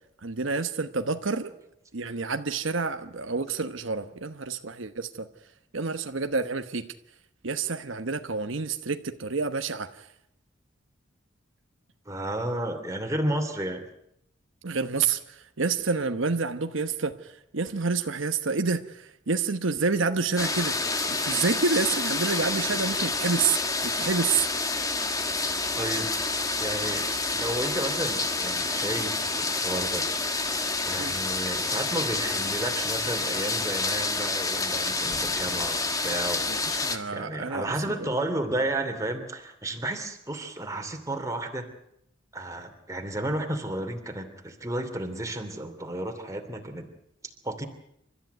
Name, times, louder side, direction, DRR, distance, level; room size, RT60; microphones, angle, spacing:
voice 1, 0.2-1.5 1.9-5.3 5.7-6.9 7.4-10.1 14.6-20.7 21.1-24.5 31.0-31.2 36.5-38.1, right 4 dB, 75° right, 1.1 m, -28 dB
voice 2, 12.1-13.8 25.8-26.2 26.6-27.1 27.3-30.1 30.9-36.4 37.1-41.7 42.3-46.9 47.4-47.6, right 1 dB, 15° right, 2.7 m, -32 dB
sound 1, 20.4-37.0, left 3 dB, 15° left, 1.6 m, -28 dB
29.0 x 13.5 x 9.3 m
head